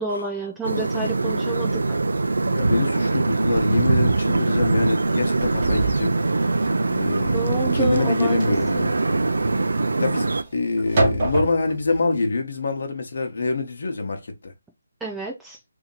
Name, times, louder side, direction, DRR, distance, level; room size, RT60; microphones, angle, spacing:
voice 1, 0.0-1.8 7.3-8.9 15.0-15.6, right 2 dB, 5° right, 0.3 m, -29 dB
sound 1, 0.6-10.4, right 3 dB, 90° right, 0.5 m, -22 dB
voice 2, 2.4-6.5 6.9-8.9 10.0-14.5, left 3 dB, 55° left, 1.0 m, -25 dB
sound 2, 3.5-3.7 4.1-4.4 4.8-12.0, right 2 dB, 30° right, 1.1 m, -28 dB
2.8 x 2.8 x 3.8 m
hypercardioid pair, 170°, 0 cm